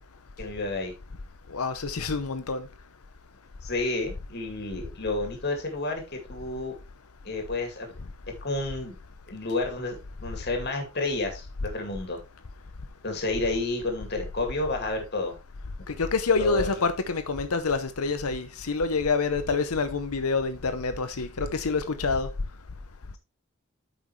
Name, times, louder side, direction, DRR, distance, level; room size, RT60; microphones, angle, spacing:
voice 1, 0.4-0.9 3.6-6.8 7.2-7.9 8.4-8.9 9.3-11.5 11.7-12.2 13.0-15.3 16.4-16.9, left 2 dB, 50° left, 2.3 m, -30 dB
voice 2, 1.5-2.7 15.9-22.3, left 4 dB, 90° left, 0.8 m, -27 dB
8.7 x 6.1 x 3.2 m
head